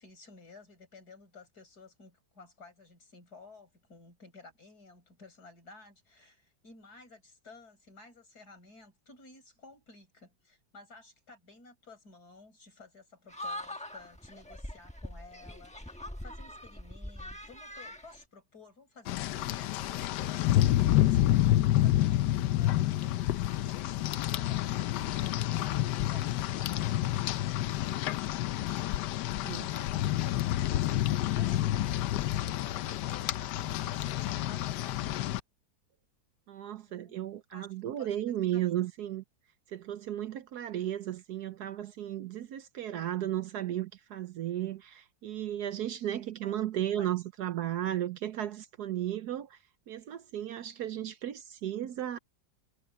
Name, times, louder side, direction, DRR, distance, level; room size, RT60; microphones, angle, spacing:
voice 1, 0.0-28.9 29.6-35.4 36.9-37.2 37.5-37.7 38.0-38.7 46.4-46.6 46.9-47.1, left 3 dB, 60° left, 7.0 m, -54 dB
sound 1, 13.3-18.2, left 1 dB, 5° left, 1.0 m, -43 dB
Rain, 19.1-35.4, left 14 dB, 75° left, 1.2 m, -29 dB
voice 2, 36.5-39.2 39.7-49.6 49.9-52.2, right 12 dB, 70° right, 1.2 m, -34 dB
omnidirectional pair, 1.9 m